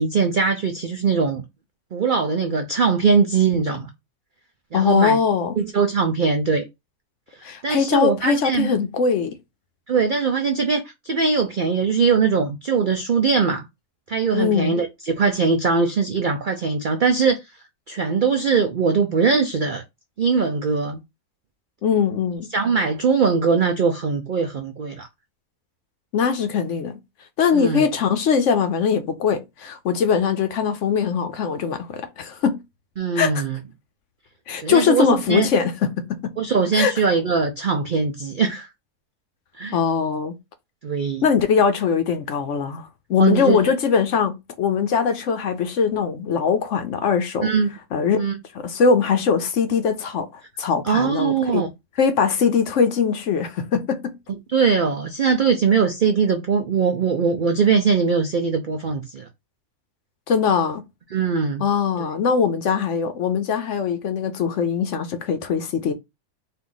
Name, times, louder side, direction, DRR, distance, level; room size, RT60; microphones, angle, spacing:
voice 1, 0.0-1.4 1.9-3.9 4.7-5.2 5.6-6.6 7.6-8.7 9.9-13.7 14.1-17.4 17.9-19.8 20.2-21.0 22.5-25.1 27.5-27.8 33.0-33.6 34.6-35.5 36.4-38.7 39.6-39.8 40.8-41.2 43.2-43.6 47.4-47.7 48.2-48.3 50.8-51.7 54.5-59.3 61.1-61.6 62.0-62.1, right 5 dB, 70° right, 0.4 m, -21 dB
voice 2, 4.7-5.5 7.4-9.4 14.3-14.8 21.8-22.5 26.1-27.0 27.4-32.6 33.1-33.5 34.5-36.3 36.7-36.9 39.7-40.3 41.2-47.5 47.9-48.2 48.5-51.6 52.0-54.1 60.3-60.8 61.6-65.9, left 6 dB, 65° left, 0.9 m, -21 dB
4.4 x 2.5 x 3.8 m
omnidirectional pair, 1.6 m